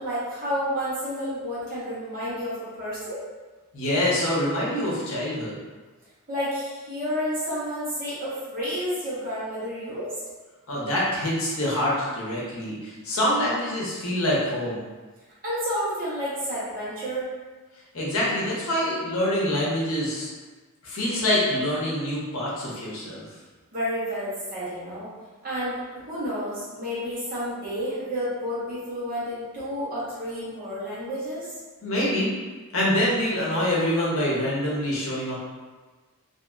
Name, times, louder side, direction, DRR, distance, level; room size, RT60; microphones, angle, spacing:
voice 1, 0.0-3.2 6.3-10.1 15.4-17.3 23.7-25.1 25.4-31.5, equal, 40° right, -10 dB, 1.1 m, -30 dB
voice 2, 3.7-5.6 10.7-14.9 17.9-20.3 20.8-23.2 31.8-32.3 32.7-35.3, left 1 dB, 65° left, -5 dB, 0.8 m, -25 dB
2.7 x 2.7 x 2.3 m, 1.3 s
head